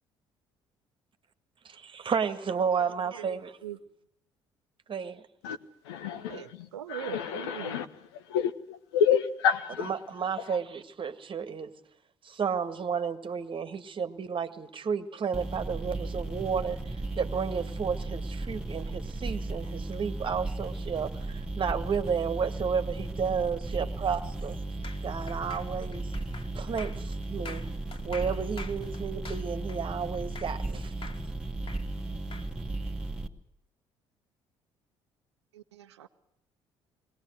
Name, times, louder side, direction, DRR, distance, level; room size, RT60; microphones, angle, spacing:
voice 1, 1.6-3.5 4.9-5.2 9.8-11.7 12.2-24.6 25.0-26.1 26.5-27.7 28.0-30.9, right 6 dB, 35° right, 1.7 m, -32 dB
voice 2, 2.8-3.8 6.3-7.8 35.5-36.1, right 10 dB, 75° right, 0.8 m, -42 dB
voice 3, 5.8-6.4 6.9-7.9 8.3-9.9 10.5-10.6, left 7 dB, 70° left, 1.2 m, -28 dB
sound 1, 15.3-33.3, right 2 dB, 5° right, 1.9 m, -35 dB
sound 2, 24.8-30.7 31.0-32.5, left 4 dB, 40° left, 2.6 m, -46 dB
21.5 x 19.0 x 7.9 m
figure-of-eight pair, 50°, 14 cm